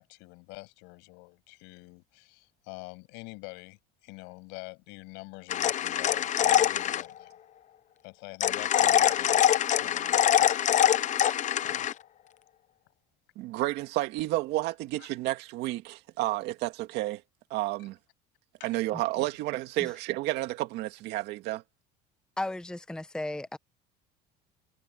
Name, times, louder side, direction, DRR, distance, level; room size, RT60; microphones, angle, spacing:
voice 1, 0.0-7.3 8.0-9.5 9.8-11.0 11.5-11.9 15.0-15.1 18.6-18.7, left 28 dB, 80° left, 7.2 m, -47 dB
sound 1, 5.5-7.1 8.4-11.9, left 11 dB, 45° left, 0.9 m, -24 dB
voice 2, 13.4-17.2 17.5-18.0 18.6-21.6, right 17 dB, 70° right, 2.2 m, -31 dB
voice 3, 22.4-23.6, left 2 dB, 5° left, 0.9 m, -35 dB
supercardioid pair, 105°, 18 cm